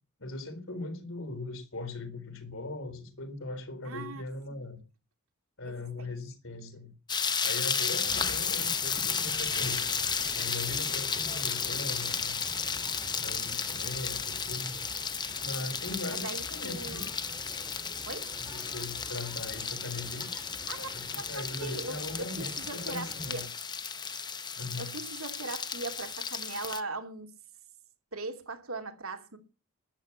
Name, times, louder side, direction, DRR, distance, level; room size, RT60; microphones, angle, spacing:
voice 1, 0.2-4.8 5.6-6.9 7.4-9.9 10.3-12.4 13.2-14.7 15.4-17.1 18.5-20.5 20.9-23.4 24.6-24.9, left 2 dB, 60° left, 4.0 m, -40 dB
voice 2, 3.8-4.2 4.5-4.7 5.6-6.1 8.1-8.3 16.1-17.2 18.1-18.3 20.7-20.9 21.2-23.5 24.8-27.3 28.1-29.4, right 3 dB, 70° right, 2.8 m, -40 dB
sound 1, 7.1-26.8, left 6 dB, 20° left, 0.9 m, -33 dB
sound 2, 8.0-23.5, right 1 dB, 15° right, 3.2 m, -48 dB
13.0 x 10.5 x 7.3 m
head